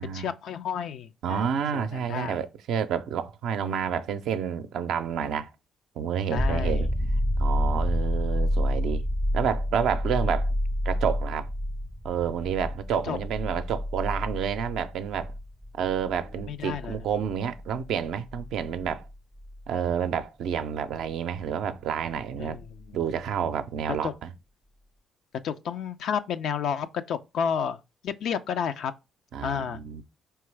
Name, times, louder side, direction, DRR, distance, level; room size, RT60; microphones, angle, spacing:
voice 1, 0.0-1.5 1.7-2.4 6.3-6.9 13.1-13.2 16.5-17.0 22.4-22.6 22.9-23.0 23.9-24.1 25.4-28.9 29.4-29.8, left 7 dB, 70° left, 0.3 m, -31 dB
voice 2, 1.2-5.5 6.0-6.9 7.4-9.0 9.3-10.5 10.8-11.5 12.0-15.3 15.8-19.0 19.7-22.6 22.9-24.3 29.3-30.0, right 8 dB, 70° right, 0.5 m, -29 dB
sound 1, 6.4-19.9 22.6-22.7, equal, ahead, 0.4 m, -29 dB
4.6 x 3.1 x 3.3 m
hypercardioid pair, 50°, 0 cm